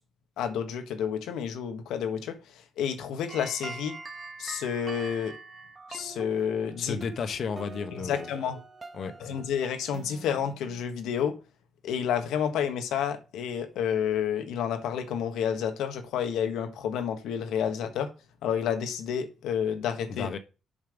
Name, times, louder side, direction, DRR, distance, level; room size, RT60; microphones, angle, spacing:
voice 1, 0.4-2.4 2.8-4.0 4.4-5.4 5.9-7.0 7.9-8.6 9.2-11.4 11.8-18.1 18.4-20.3, left 8 dB, 85° left, 1.3 m, -30 dB
sound 1, 3.3-10.8, right 3 dB, 30° right, 1.4 m, -44 dB
voice 2, 6.8-8.3 8.9-9.4 20.1-20.4, left 5 dB, 60° left, 1.1 m, -33 dB
7.3 x 5.4 x 5.1 m
cardioid pair, 90°, 0 cm